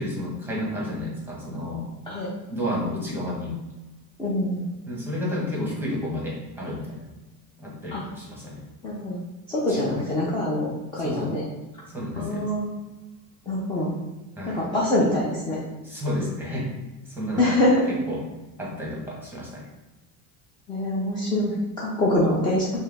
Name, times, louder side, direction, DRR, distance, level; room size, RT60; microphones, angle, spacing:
voice 1, 0.0-1.9 2.5-3.6 4.9-7.1 7.6-8.6 9.7-10.0 11.0-11.4 11.9-12.5 14.4-14.7 15.8-16.8 17.1-17.6 17.9-18.2 18.6-19.7, left 1 dB, 5° right, -4 dB, 1.0 m, -31 dB
voice 2, 4.2-4.6 7.9-8.0 8.8-9.2 9.5-11.4 12.2-12.6 13.5-13.9 14.5-15.6 17.4-17.8 20.7-22.7, left 1 dB, 10° left, -6 dB, 0.5 m, -24 dB
5.4 x 2.0 x 3.4 m, 1.1 s
cardioid pair, 155°, 44 cm